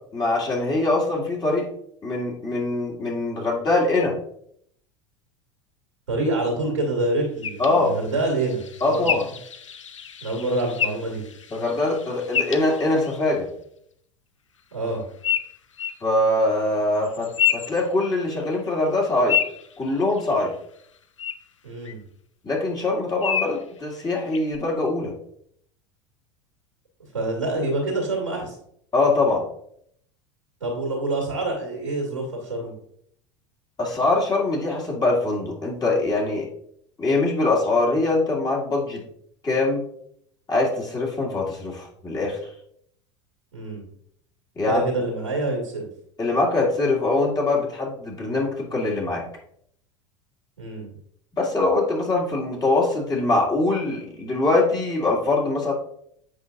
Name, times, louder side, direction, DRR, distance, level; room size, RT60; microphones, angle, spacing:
voice 1, 0.1-1.7 2.0-4.2 7.6-7.9 8.8-9.3 11.5-13.5 16.0-19.4 19.8-20.5 22.4-25.1 28.9-29.4 33.8-36.5 37.0-39.0 39.4-39.8 40.5-42.4 44.6-44.9 46.2-49.2 51.4-55.7, left 2 dB, 25° left, -3 dB, 2.1 m, -23 dB
voice 2, 6.1-9.1 10.2-11.2 14.7-15.0 21.6-22.0 27.1-28.6 30.6-32.7 43.5-43.8 44.7-45.9 50.6-50.9, right 2 dB, 85° right, -4 dB, 1.9 m, -26 dB
sound 1, 7.4-13.3 15.2-16.0 17.0-18.5 18.8-20.5 21.2-21.3 21.8-21.9 23.2-23.6 24.3-24.6, left 8 dB, 85° left, 0.5 m, -29 dB
8.0 x 5.5 x 2.5 m, 0.68 s
figure-of-eight pair, 80°, 16 cm